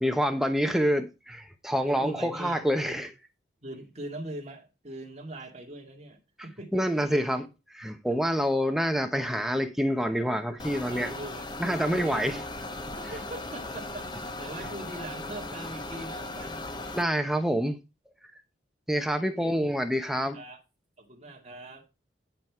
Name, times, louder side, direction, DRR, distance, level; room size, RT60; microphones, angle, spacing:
voice 1, 0.0-3.1 6.7-7.4 7.7-11.1 11.6-12.4 16.9-17.8 18.9-20.4, equal, ahead, 0.9 m, -27 dB
voice 2, 1.7-3.0 3.6-7.0 8.1-8.2 10.9-12.4 12.9-16.7 19.2-19.6 20.3-20.6 21.0-21.9, right 1 dB, 35° right, 2.1 m, -42 dB
sound 1, 10.6-17.0, left 2 dB, 25° left, 0.9 m, -38 dB
10.5 x 5.4 x 4.7 m
head